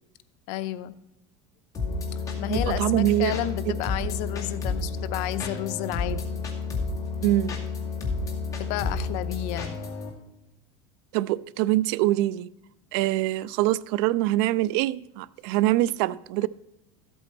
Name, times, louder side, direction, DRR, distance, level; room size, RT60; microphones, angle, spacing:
voice 1, 0.5-0.9 2.4-6.2 8.6-9.8, left 13 dB, 65° left, 0.7 m, -31 dB
sound 1, 1.7-10.1, left 4 dB, 25° left, 2.2 m, -31 dB
voice 2, 2.5-3.4 7.2-7.6 11.1-12.5 12.9-16.5, right 16 dB, 70° right, 0.4 m, -24 dB
13.5 x 8.2 x 4.3 m
cardioid pair, 140°, 13 cm